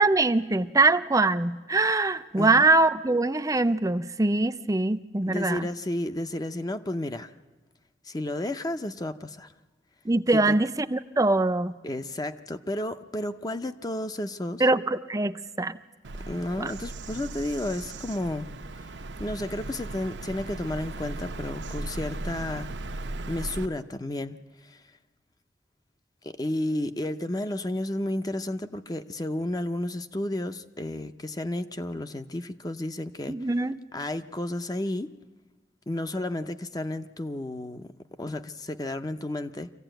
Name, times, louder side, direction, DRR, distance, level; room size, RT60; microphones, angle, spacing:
voice 1, 0.0-5.7 10.1-11.8 14.6-15.7 16.6-16.7 33.3-33.8, right 2 dB, 20° right, 11 dB, 0.6 m, -23 dB
voice 2, 2.4-2.7 5.3-7.3 8.0-9.5 10.3-10.5 11.8-14.6 16.3-18.5 19.2-22.7 23.3-24.8 26.2-33.5 33.9-35.1 35.9-37.9 38.2-39.7, left 1 dB, 20° left, 9 dB, 0.6 m, -32 dB
Bird vocalization bird call bird song, 16.0-23.7, right 2 dB, 75° right, 0.8 m, -37 dB
25.0 x 15.5 x 9.0 m, 1.3 s
head